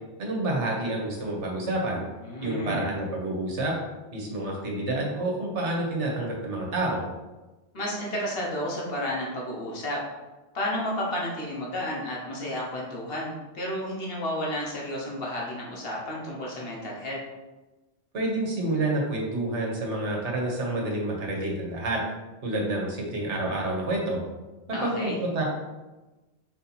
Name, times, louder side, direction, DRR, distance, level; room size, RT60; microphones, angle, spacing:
voice 1, 0.2-2.0 2.4-3.7 4.1-7.0 18.1-22.0 22.4-24.2 24.8-25.4, right 2 dB, 85° right, -1 dB, 1.4 m, -28 dB
voice 2, 2.2-2.9 7.7-10.0 10.5-17.2 24.7-25.2, left 1 dB, 55° left, -3 dB, 1.4 m, -32 dB
4.5 x 2.9 x 4.1 m, 1.1 s
omnidirectional pair, 1.2 m